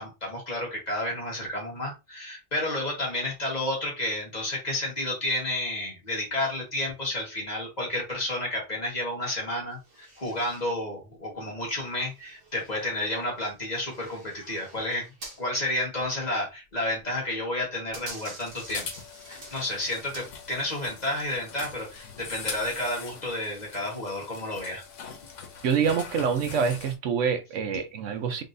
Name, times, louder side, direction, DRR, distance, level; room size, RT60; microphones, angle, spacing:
voice 1, 0.0-15.1 15.4-18.9 19.3-24.8, left 1 dB, 35° left, 1.7 m, -31 dB
sound 1, 9.8-10.7 11.2-15.5 15.7-15.8 16.7-17.1 17.5-20.7 21.2-21.5, right 2 dB, 50° right, 1.2 m, -48 dB
sound 2, 18.4-27.0, left 6 dB, 90° left, 1.2 m, -42 dB
voice 2, 25.6-28.4, right 6 dB, 85° right, 1.1 m, -26 dB
3.8 x 3.7 x 2.6 m
omnidirectional pair, 1.2 m